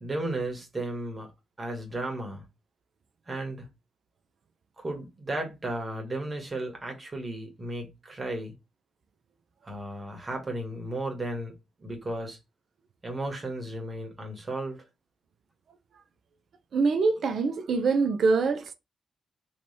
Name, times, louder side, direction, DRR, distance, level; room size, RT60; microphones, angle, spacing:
voice 1, 0.0-1.3 1.6-2.4 3.3-3.7 4.8-8.5 9.6-11.5 11.8-12.4 13.0-14.8, right 1 dB, 35° right, 1.5 m, -34 dB
voice 2, 16.7-18.7, right 4 dB, 65° right, 0.6 m, -24 dB
3.2 x 3.0 x 4.2 m
supercardioid pair, 55°, 0 cm